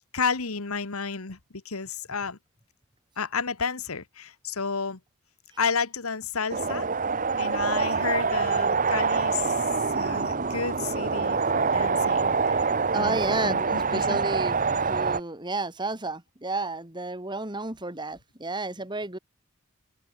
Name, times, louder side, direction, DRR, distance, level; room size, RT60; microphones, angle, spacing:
voice 1, 0.1-1.4 1.6-2.4 3.2-5.0 5.6-6.9 7.4-9.5 9.9-14.2, left 5 dB, 80° left, 1.5 m, -31 dB
sound 1, 6.5-15.2, right 4 dB, 35° right, 1.1 m, -25 dB
voice 2, 12.9-19.2, right 2 dB, 20° right, 2.6 m, -31 dB
head